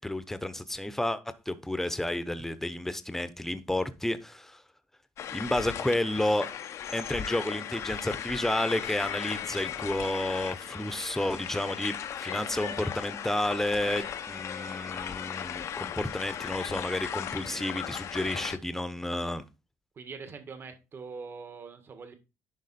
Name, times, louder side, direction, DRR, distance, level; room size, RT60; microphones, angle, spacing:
voice 1, 0.0-1.2 1.5-4.6 5.3-6.5 6.9-11.9 12.2-19.4, left 1 dB, 5° left, 0.9 m, -31 dB
sound 1, 5.2-18.6, left 9 dB, 65° left, 0.8 m, -37 dB
voice 2, 19.9-22.1, right 5 dB, 45° right, 1.7 m, -43 dB
11.0 x 4.3 x 4.3 m
cardioid pair, 100°, 5 cm